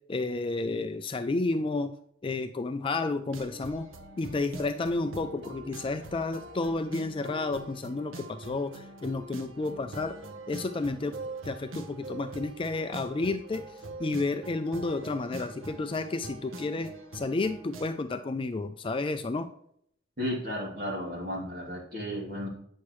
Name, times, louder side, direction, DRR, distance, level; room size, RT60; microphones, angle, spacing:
voice 1, 0.0-2.0 2.2-3.9 4.2-10.2 10.5-11.2 11.4-19.5, left 3 dB, 25° left, 9 dB, 0.4 m, -31 dB
sound 1, 3.3-17.9, right 2 dB, 85° right, 1.0 m, -43 dB
voice 2, 20.2-22.5, equal, 45° right, -4 dB, 2.8 m, -34 dB
8.4 x 6.4 x 3.1 m, 0.68 s
head